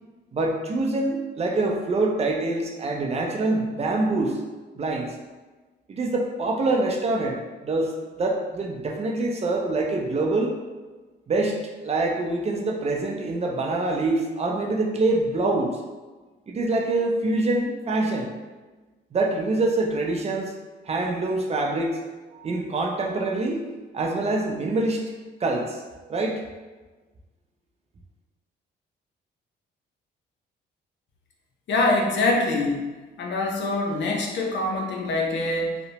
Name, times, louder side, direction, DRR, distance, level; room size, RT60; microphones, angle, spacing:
voice 1, 0.3-4.4 4.8-5.1 5.9-7.4 7.6-10.5 11.3-15.8 16.5-18.3 19.1-20.5 20.9-22.0 22.3-23.6 23.9-25.0 25.4-25.8 26.1-26.4, right 2 dB, 30° right, 0 dB, 0.4 m, -25 dB
voice 2, 31.7-32.8 33.2-35.8, left 2 dB, 65° left, 0 dB, 0.6 m, -24 dB
2.8 x 2.0 x 2.8 m, 1.3 s
cardioid pair, 90°, 20 cm